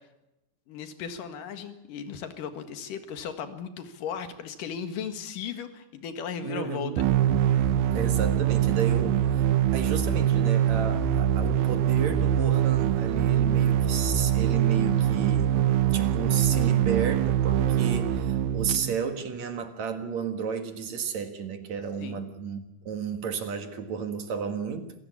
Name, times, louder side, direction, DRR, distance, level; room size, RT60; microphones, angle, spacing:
voice 1, 0.7-7.0 22.0-22.2, left 7 dB, 65° left, 8 dB, 3.2 m, -36 dB
voice 2, 6.4-7.1 7.9-9.4 9.7-24.9, right 6 dB, 55° right, 7 dB, 2.6 m, -32 dB
sound 1, 7.0-18.9, right 10 dB, 90° right, 3.1 m, -23 dB
26.5 x 17.0 x 8.5 m, 0.93 s
omnidirectional pair, 4.3 m